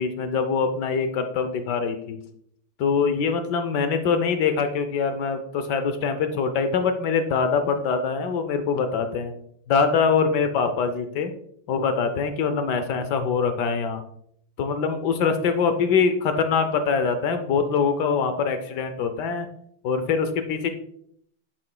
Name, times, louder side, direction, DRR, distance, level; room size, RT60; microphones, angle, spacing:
voice 1, 0.0-2.2 2.8-9.3 9.7-11.3 11.7-14.0 14.6-19.5 19.8-20.7, left 5 dB, 70° left, 8 dB, 1.1 m, -23 dB
7.7 x 7.4 x 2.2 m, 0.69 s
omnidirectional pair, 2.2 m